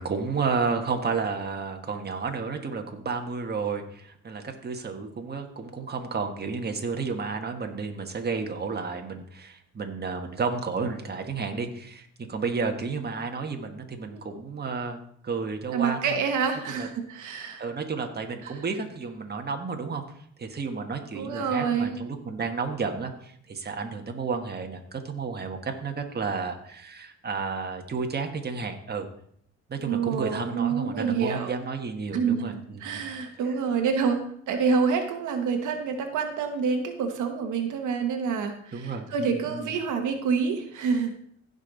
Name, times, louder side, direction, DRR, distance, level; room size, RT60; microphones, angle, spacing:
voice 1, 0.0-15.0 15.2-16.2 16.7-16.9 17.6-20.0 20.4-29.1 29.7-33.1 38.7-39.7, right 4 dB, 35° right, 4 dB, 1.5 m, -32 dB
voice 2, 15.7-17.6 18.4-18.6 21.1-21.9 29.8-31.5 32.1-41.1, right 6 dB, 80° right, 5 dB, 1.3 m, -27 dB
15.5 x 5.4 x 4.0 m, 0.65 s
cardioid pair, 90°, 30 cm